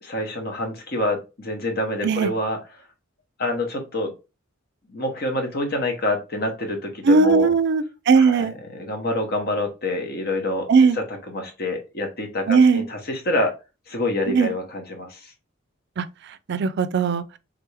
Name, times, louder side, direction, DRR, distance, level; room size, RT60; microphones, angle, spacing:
voice 1, 0.0-2.8 3.4-4.1 4.9-7.5 8.1-10.7 10.9-13.5 13.9-15.3, left 1 dB, 50° left, 1.1 m, -27 dB
voice 2, 7.1-8.5 10.7-11.0 12.5-12.9 14.3-14.5 16.0-16.1 16.5-17.2, right 4 dB, 55° right, 0.4 m, -18 dB
3.6 x 3.4 x 3.2 m
head